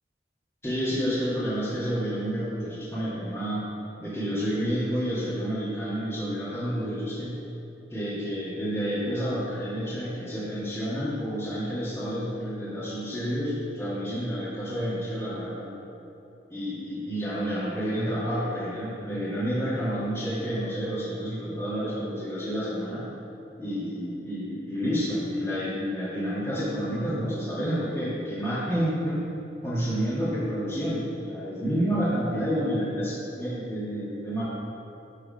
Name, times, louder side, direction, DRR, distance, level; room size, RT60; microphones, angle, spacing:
voice 1, 0.6-3.7 4.0-7.4 7.9-15.7 16.5-23.0 23.6-29.2 29.6-34.4, equal, 15° left, -10 dB, 1.8 m, -29 dB
10.0 x 3.8 x 5.2 m, 2.9 s
head